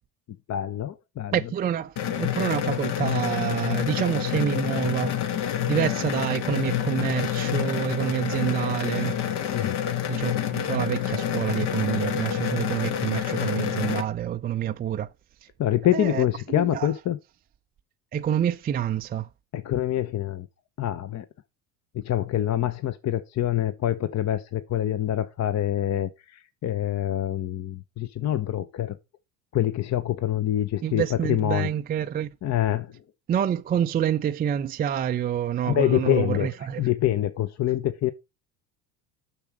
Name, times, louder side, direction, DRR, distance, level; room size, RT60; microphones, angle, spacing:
voice 1, 0.5-1.5 9.5-9.8 15.6-17.2 19.5-20.5 20.8-21.2 21.9-29.0 29.5-31.7 32.4-32.9 35.6-38.1, left 12 dB, 35° left, 0.8 m, -26 dB
voice 2, 1.3-5.4 5.7-9.2 10.1-15.1 15.9-16.9 18.1-19.3 30.8-32.3 33.3-36.9, right 9 dB, 20° right, 0.4 m, -27 dB
sound 1, 2.0-14.0, left 10 dB, 60° left, 1.4 m, -28 dB
6.7 x 6.1 x 4.8 m
hypercardioid pair, 75°, 45 cm